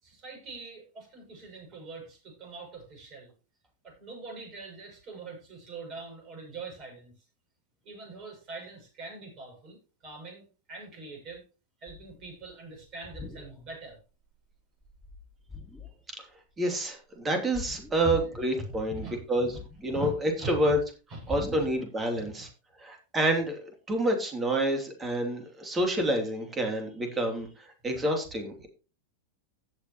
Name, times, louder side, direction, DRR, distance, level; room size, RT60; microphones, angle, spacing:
voice 1, 0.0-3.3 3.8-7.1 7.8-11.4 11.8-14.0 18.0-18.1 18.6-20.7 21.1-21.7 22.1-22.5, right 2 dB, 35° right, 1 dB, 6.8 m, -42 dB
sound 1, 11.9-12.3 12.9-13.9 14.3-14.5 14.8-16.1 17.5-18.3 18.6-20.2 21.3-21.9, left 2 dB, ahead, 2.4 m, -44 dB
voice 2, 16.6-19.5 19.8-20.8 21.3-22.5 22.8-27.5 27.8-28.7, right 1 dB, 20° right, 4 dB, 3.0 m, -28 dB
16.5 x 7.0 x 3.1 m, 0.33 s
figure-of-eight pair, 90°, 0 cm